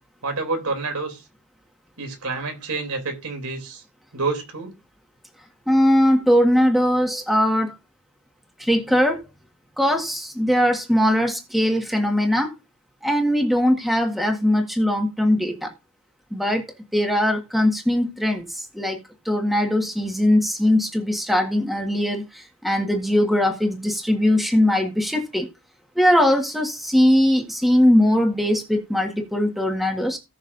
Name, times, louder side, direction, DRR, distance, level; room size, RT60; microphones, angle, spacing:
voice 1, 0.2-1.2 2.0-3.8 4.1-4.7, right 3 dB, 85° right, 3.3 m, -28 dB
voice 2, 5.7-7.7 8.6-9.2 9.8-12.5 13.0-15.7 16.3-16.6 16.9-19.0 19.2-25.5 25.9-30.2, left 1 dB, ahead, 1.7 m, -20 dB
18.5 x 6.4 x 2.7 m
head